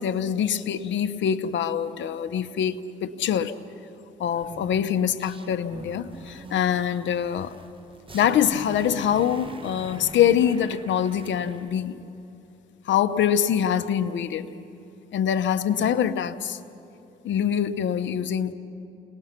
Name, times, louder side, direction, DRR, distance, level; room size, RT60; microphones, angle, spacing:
voice 1, 0.0-3.5 4.2-7.6 8.1-12.0 12.8-14.5 15.1-16.6 17.2-18.5, left 9 dB, 70° left, 0.9 m, -24 dB
sound 1, 4.3-11.7, right 3 dB, 25° right, 1.4 m, -43 dB
29.0 x 20.0 x 5.9 m
cardioid pair, 90°, 20 cm